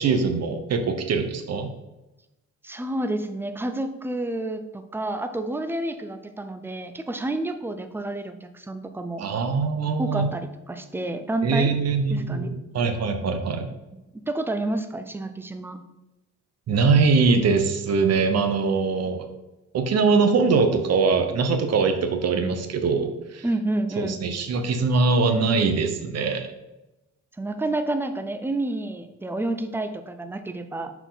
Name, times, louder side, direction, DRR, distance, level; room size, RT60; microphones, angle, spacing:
voice 1, 0.0-1.7 9.2-10.3 11.4-13.7 16.7-19.3 19.7-23.4 24.0-26.5, right 4 dB, 55° right, 7 dB, 0.9 m, -22 dB
voice 2, 2.6-9.2 10.0-11.7 12.1-12.5 13.9-14.0 14.3-15.8 23.4-24.2 27.4-30.9, right 2 dB, 5° right, 8 dB, 0.5 m, -29 dB
6.1 x 4.6 x 4.0 m, 0.98 s
cardioid pair, 90°, 30 cm